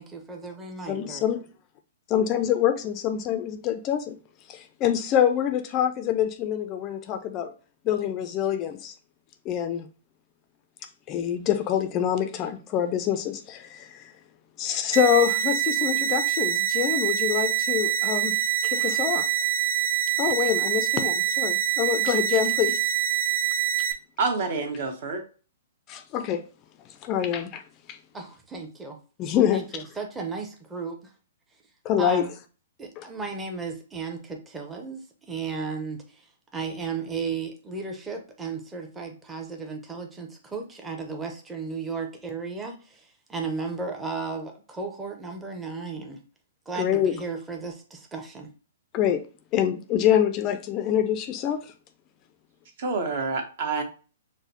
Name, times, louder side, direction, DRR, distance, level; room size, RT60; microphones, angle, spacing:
voice 1, 0.0-1.2 28.1-29.0 29.5-31.0 32.0-32.3 32.8-36.3 36.5-46.2 46.7-48.5, right 4 dB, 10° right, 0.6 m, -34 dB
voice 2, 0.9-1.5 2.1-4.2 4.5-7.5 7.8-8.9 9.5-9.9 11.1-14.1 14.6-18.4 18.6-19.3 20.2-22.8 25.9-26.4 27.0-27.6 27.9-28.0 29.2-29.6 31.8-32.3 33.0-33.1 46.7-47.2 48.9-49.2 49.5-51.7, left 10 dB, 30° left, 0.3 m, -25 dB
sound 1, 14.9-23.9, right 10 dB, 80° right, 0.3 m, -25 dB
voice 3, 24.2-25.2 52.8-53.8, right 4 dB, 55° right, 0.9 m, -27 dB
4.8 x 2.0 x 2.8 m
hypercardioid pair, 140°, 0 cm